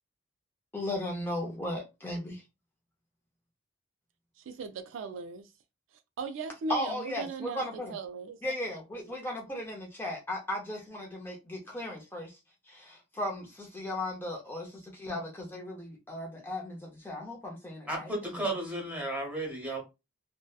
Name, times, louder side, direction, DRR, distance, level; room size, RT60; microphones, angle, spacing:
voice 1, 0.7-2.4 6.7-7.9 8.4-12.4 12.7-16.8 17.0-18.5, left 1 dB, 10° left, 0.5 m, -36 dB
voice 2, 4.4-5.5 6.2-8.4, right 4 dB, 70° right, 0.3 m, -38 dB
voice 3, 17.9-19.8, right 1 dB, 5° right, 0.9 m, -33 dB
2.6 x 2.1 x 2.2 m
head